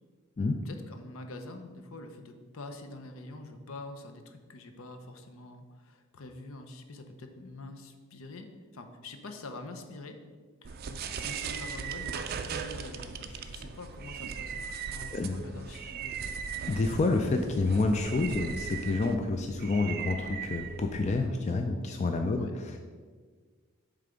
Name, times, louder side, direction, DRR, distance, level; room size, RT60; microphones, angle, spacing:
voice 1, 0.6-10.2 10.6-16.3 22.3-22.5, left 2 dB, 70° left, 6 dB, 0.6 m, -45 dB
sound 1, 10.6-21.3, right 6 dB, 45° right, 0.3 m, -39 dB
voice 2, 15.1-15.4 16.7-22.8, left 3 dB, 30° left, 4 dB, 0.3 m, -28 dB
7.3 x 3.4 x 5.0 m, 1.5 s
head